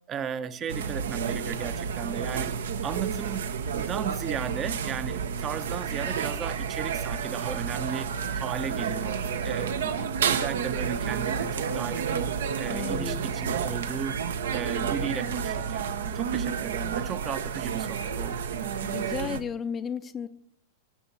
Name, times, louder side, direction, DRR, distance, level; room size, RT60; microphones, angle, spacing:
voice 1, 0.1-3.4 3.7-14.2 14.5-15.8 16.1-18.4, right 8 dB, 30° right, 12 dB, 0.8 m, -35 dB
sound 1, 0.7-19.4, right 6 dB, 65° right, 0.9 m, -30 dB
voice 2, 12.7-13.2 18.8-20.3, left 7 dB, 25° left, 11 dB, 0.6 m, -34 dB
19.5 x 7.0 x 4.0 m, 0.67 s
figure-of-eight pair, 95°, 0 cm